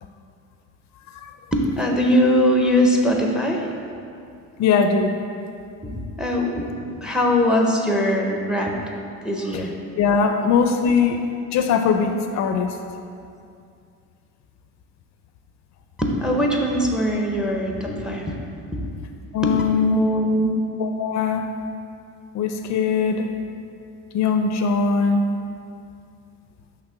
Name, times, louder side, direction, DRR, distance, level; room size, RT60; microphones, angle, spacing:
voice 1, 1.5-3.7 5.8-8.9 9.2-9.7 16.0-18.3 18.7-18.8 19.4-19.5 19.9-20.5, equal, ahead, 1 dB, 0.5 m, -21 dB
voice 2, 4.6-5.2 9.5-9.6 10.0-11.2 11.5-12.7 19.3-20.0 20.8-21.5 22.3-23.3 24.1-25.3, left 5 dB, 55° left, 6 dB, 0.4 m, -20 dB
6.0 x 3.3 x 5.4 m, 2.4 s
cardioid pair, 125°, 34 cm